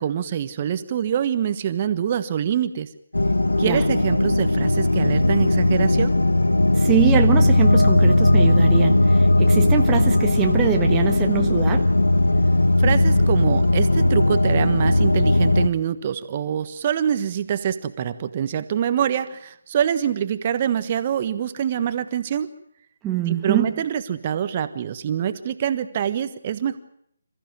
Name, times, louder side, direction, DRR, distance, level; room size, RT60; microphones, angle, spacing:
voice 1, 0.0-2.9 3.6-6.1 12.8-22.5 23.3-26.8, right 9 dB, 35° right, 11 dB, 1.3 m, -25 dB
sound 1, 3.1-15.7, left 1 dB, 85° left, 1.1 m, -18 dB
voice 2, 6.7-11.9 23.0-23.8, right 10 dB, 15° right, 3 dB, 1.2 m, -24 dB
27.5 x 14.5 x 9.3 m, 0.70 s
figure-of-eight pair, 150°, 0 cm